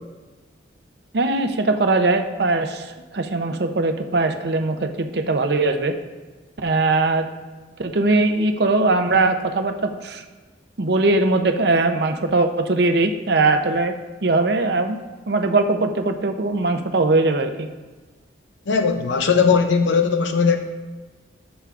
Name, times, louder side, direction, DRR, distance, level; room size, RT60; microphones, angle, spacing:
voice 1, 1.1-6.0 6.6-7.3 7.8-10.2 10.8-15.0 15.3-17.7, right 3 dB, 60° right, 6 dB, 0.6 m, -20 dB
voice 2, 18.7-20.6, left 5 dB, 75° left, 6 dB, 0.5 m, -18 dB
13.5 x 7.1 x 2.5 m, 1.3 s
head